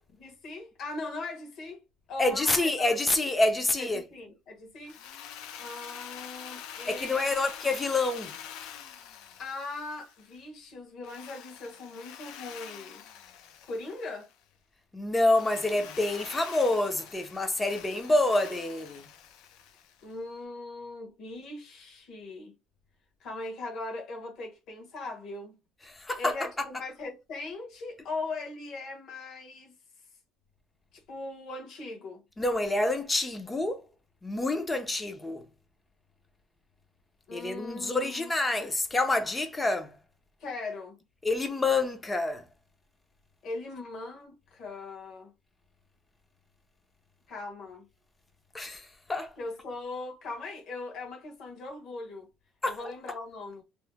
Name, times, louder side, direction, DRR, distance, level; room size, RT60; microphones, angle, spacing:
voice 1, 0.2-1.8 2.1-3.2 3.8-5.0 5.6-7.5 9.4-13.0 13.6-14.3 20.0-22.5 23.2-25.6 26.2-29.8 30.9-32.2 37.3-38.3 40.4-41.0 43.4-45.3 47.3-47.9 49.4-52.3 52.6-53.6, left 3 dB, 45° left, 1.1 m, -40 dB
voice 2, 2.2-4.0 6.9-8.3 14.9-19.0 25.9-26.7 32.4-33.8 34.2-35.4 37.3-39.9 41.2-42.4 48.5-49.3 52.6-52.8, left 2 dB, 10° left, 0.5 m, -27 dB
Drill, 4.8-10.4 11.0-14.3 15.3-20.1, left 9 dB, 65° left, 0.5 m, -46 dB
2.8 x 2.1 x 3.3 m
cardioid pair, 160°, 0 cm